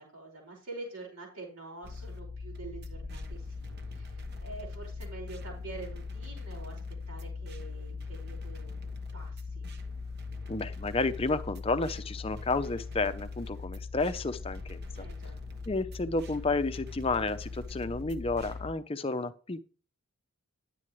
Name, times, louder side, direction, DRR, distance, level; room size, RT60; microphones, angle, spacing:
voice 1, 0.0-6.8 7.1-8.9 9.1-9.7 14.9-15.4, right 3 dB, 90° right, -1 dB, 5.3 m, -46 dB
sound 1, 1.8-18.7, left 4 dB, 50° right, 1.1 m, -40 dB
voice 2, 10.5-15.1 15.7-19.7, left 3 dB, 25° left, 11 dB, 0.6 m, -31 dB
11.0 x 8.4 x 3.1 m, 0.37 s
head